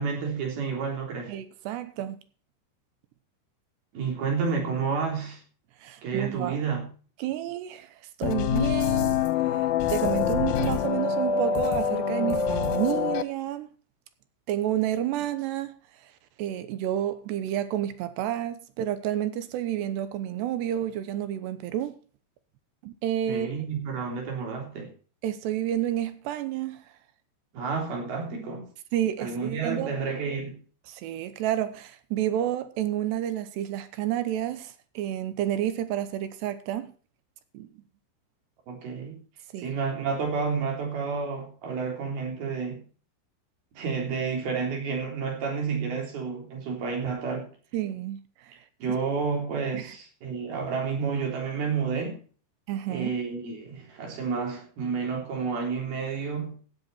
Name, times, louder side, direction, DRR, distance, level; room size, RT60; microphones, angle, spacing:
voice 1, 0.0-1.3 3.9-5.4 6.0-6.9 23.3-24.9 27.5-28.7 29.2-30.6 38.7-39.2 39.6-42.8 43.8-47.5 48.8-52.2 52.9-56.6, right 5 dB, 55° right, 5.3 m, -30 dB
voice 2, 1.3-2.2 5.8-6.6 7.2-9.2 9.5-13.7 14.5-15.7 16.0-16.1 16.4-22.0 22.8-23.5 25.2-26.8 28.9-29.9 30.9-36.9 37.5-37.7 39.5-39.7 47.7-48.5 48.9-49.0 49.7-50.0 52.7-53.1, right 12 dB, 75° right, 2.9 m, -30 dB
sound 1, 8.2-13.2, left 7 dB, 75° left, 2.1 m, -25 dB
15.5 x 8.2 x 4.4 m
omnidirectional pair, 5.3 m